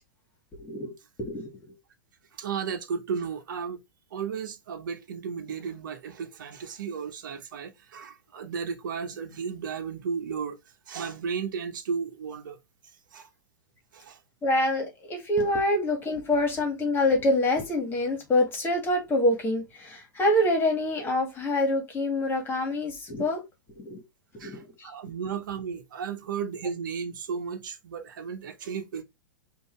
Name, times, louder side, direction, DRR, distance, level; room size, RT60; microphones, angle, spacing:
voice 1, 0.5-0.9 1.2-1.7 14.4-23.4 23.8-24.0 24.3-24.9, left 1 dB, 20° left, 1.9 m, -26 dB
voice 2, 2.4-3.8 4.1-10.6 10.9-12.6 13.1-13.3 13.9-14.2 24.4-29.0, right 6 dB, 70° right, 1.1 m, -34 dB
5.4 x 2.8 x 3.2 m
hypercardioid pair, 120°, 11 cm